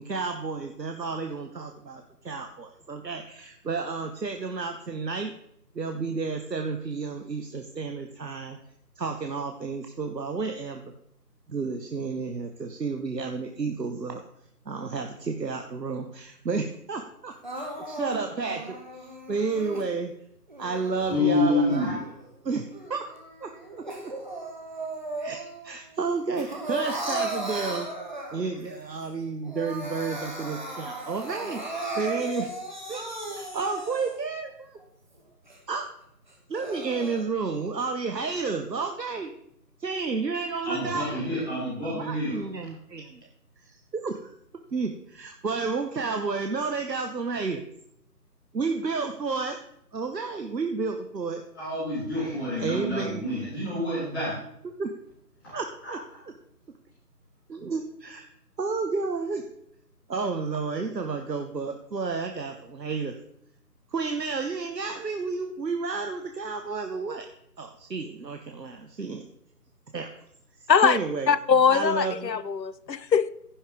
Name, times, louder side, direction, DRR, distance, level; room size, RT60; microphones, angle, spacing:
voice 1, 0.0-5.3 5.7-8.6 9.0-10.9 11.5-14.2 14.6-20.1 20.6-21.9 22.4-23.0 23.4-23.8 25.2-27.9 28.3-32.5 32.9-33.0 33.3-34.8 35.7-35.9 36.5-39.3 39.8-41.2 41.8-43.3 43.6-44.3 44.7-47.7 48.5-49.6 49.9-51.4 52.6-53.2 54.8-54.9 55.5-56.0 57.5-58.2 58.6-59.4 60.1-63.1 63.9-67.3 67.6-69.3 69.9-70.1 70.6-71.3 71.7-72.4, right 4 dB, 80° right, 5 dB, 1.1 m, -31 dB
Crying sobbing, 17.4-19.9 20.5-22.3 22.7-25.6 26.0-28.6 29.1-29.2 29.4-34.3 34.8-34.9 35.5-35.6 36.3-37.2, right 2 dB, 30° right, 1.2 m, -36 dB
voice 2, 21.1-22.0 40.6-42.4 51.5-54.3 55.4-55.5 55.8-55.9, left 2 dB, 15° left, -11 dB, 3.8 m, -28 dB
voice 3, 71.3-73.3, left 6 dB, 90° left, 16 dB, 0.7 m, -21 dB
15.5 x 5.7 x 3.6 m, 0.74 s
figure-of-eight pair, 165°, 49 cm